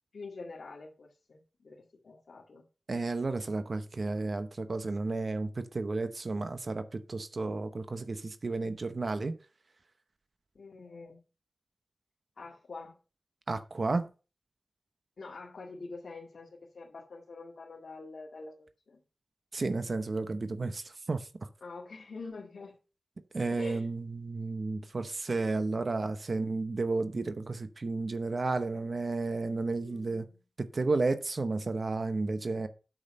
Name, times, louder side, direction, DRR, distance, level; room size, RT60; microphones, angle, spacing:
voice 1, 0.1-2.6 8.0-8.1 10.5-11.2 12.4-13.0 15.2-19.0 21.6-22.8 23.5-23.9 29.8-30.4, left 3 dB, 80° left, 2.0 m, -46 dB
voice 2, 2.9-9.3 13.5-14.1 19.5-21.3 23.3-30.3 30.6-32.7, right 3 dB, 55° right, 0.8 m, -32 dB
8.7 x 6.3 x 5.3 m
wide cardioid pair, 80°, 0 cm